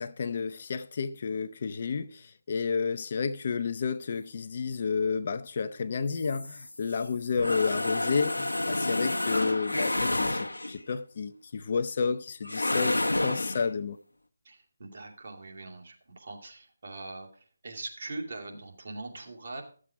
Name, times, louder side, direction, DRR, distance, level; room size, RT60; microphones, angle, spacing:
voice 1, 0.0-14.0, left 5 dB, 40° left, 0.6 m, -31 dB
sound 1, 6.1-10.9 12.4-13.6, left 2 dB, 85° left, 0.9 m, -30 dB
voice 2, 14.4-17.3 17.6-19.6, right 2 dB, 55° right, 2.6 m, -41 dB
13.0 x 7.5 x 4.8 m
figure-of-eight pair, 155°, 0 cm